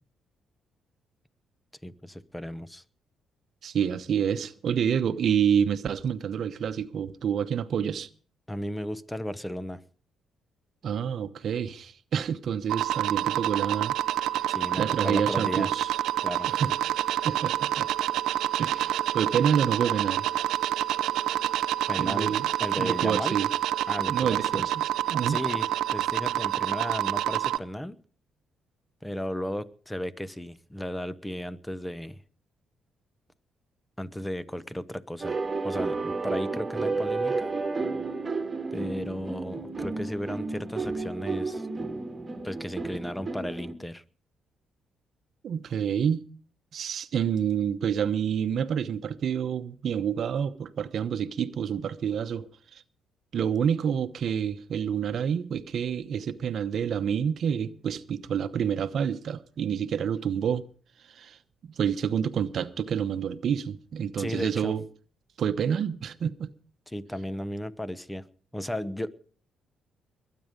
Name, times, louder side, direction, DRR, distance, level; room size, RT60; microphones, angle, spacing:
voice 1, 1.8-2.8 8.5-9.8 14.5-15.7 16.2-16.5 21.9-23.4 23.9-24.7 25.3-28.0 29.0-32.2 34.0-35.4 35.6-37.5 38.7-41.7 42.4-44.0 64.2-64.8 66.9-68.3 68.5-69.1, left 1 dB, 10° left, 0.9 m, -35 dB
voice 2, 3.6-8.1 10.8-13.9 14.4-14.5 14.8-15.9 16.5-16.7 17.2-17.9 18.6-20.3 22.0-22.5 22.8-23.5 24.1-25.4 45.4-46.3 46.7-52.8 53.3-60.7 61.1-61.4 61.6-64.8 65.4-66.5, right 8 dB, 60° right, 0.9 m, -28 dB
sound 1, 12.7-27.6, right 13 dB, 85° right, 0.7 m, -28 dB
sound 2, 35.2-43.7, right 3 dB, 25° right, 2.0 m, -32 dB
22.0 x 9.3 x 5.2 m
cardioid pair, 90°, 0 cm